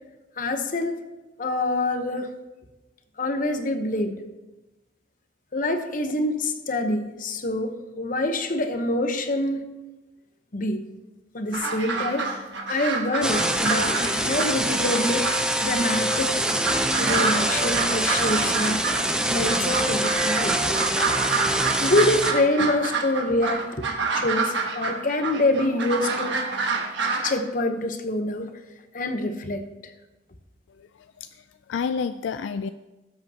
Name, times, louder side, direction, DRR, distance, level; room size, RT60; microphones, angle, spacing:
voice 1, 0.4-1.0 1.4-2.3 3.2-4.2 5.5-9.7 10.5-10.8 11.3-12.4 12.7-15.3 15.6-16.4 17.0-18.8 19.3-20.6 21.8-23.9 24.1-26.4 27.2-28.6 28.9-29.9, left 1 dB, 45° left, 7 dB, 0.9 m, -26 dB
sound 1, 11.5-27.3, right 4 dB, 70° right, 1.4 m, -28 dB
sound 2, 13.2-22.3, right 1 dB, 5° right, 0.6 m, -25 dB
voice 2, 30.7-32.7, left 6 dB, 75° left, 10 dB, 0.3 m, -31 dB
18.5 x 7.8 x 2.9 m, 1.1 s
head